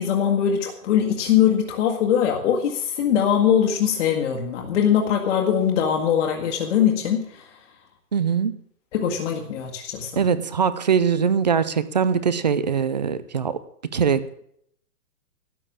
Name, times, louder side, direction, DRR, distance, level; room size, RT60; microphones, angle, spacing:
voice 1, 0.0-7.6 8.9-10.2, left 9 dB, 50° left, 1 dB, 1.7 m, -22 dB
voice 2, 8.1-8.6 10.2-13.6 13.9-14.4, right 6 dB, 30° right, 15 dB, 0.4 m, -22 dB
12.0 x 8.7 x 7.3 m, 0.70 s
hypercardioid pair, 160°, 46 cm